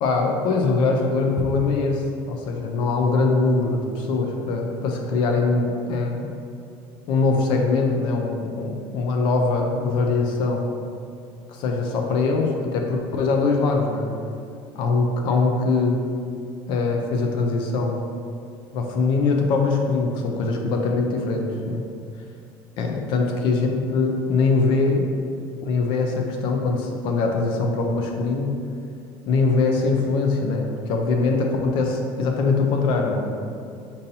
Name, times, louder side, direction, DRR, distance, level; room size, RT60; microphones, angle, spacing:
voice 1, 0.0-6.3 7.1-10.6 11.5-14.1 14.7-16.0 16.7-18.0 18.7-21.8 22.8-25.1 25.6-28.5 29.3-33.3, left 3 dB, 55° left, 2 dB, 0.4 m, -22 dB
5.4 x 2.6 x 2.7 m, 2.5 s
cardioid pair, 160°, 10 cm